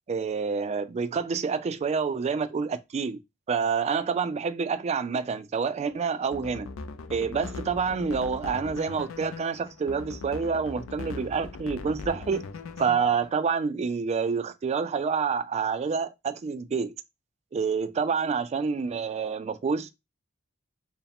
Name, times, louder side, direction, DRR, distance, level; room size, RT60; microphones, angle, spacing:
voice 1, 0.1-3.2 3.5-6.7 7.1-12.4 12.8-16.9 17.5-19.9, right 5 dB, 35° right, 0.3 m, -28 dB
sound 1, 6.2-13.3, left 4 dB, 80° left, 0.5 m, -40 dB
4.5 x 2.0 x 3.5 m
head